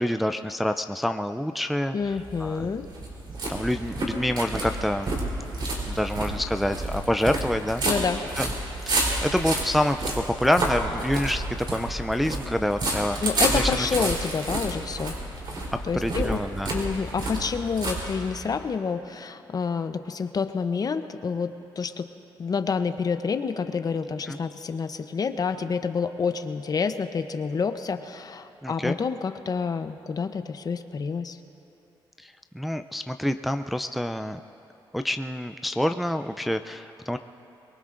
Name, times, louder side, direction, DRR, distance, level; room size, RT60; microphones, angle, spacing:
voice 1, 0.0-2.0 2.4-2.6 3.3-5.3 5.8-8.0 8.4-8.5 8.9-13.2 13.5-14.1 15.9-16.7 24.3-24.4 28.6-29.0 32.2-34.4 34.9-37.2, left 1 dB, ahead, 8 dB, 0.4 m, -27 dB
voice 2, 1.9-2.9 7.8-8.2 13.2-15.1 15.8-16.4 16.7-22.1 22.4-31.4, left 5 dB, 45° left, 9 dB, 0.7 m, -28 dB
sound 1, 2.1-18.6, right 2 dB, 55° right, 3.7 m, -30 dB
23.5 x 22.0 x 2.6 m, 2.8 s
cardioid pair, 85°, 9 cm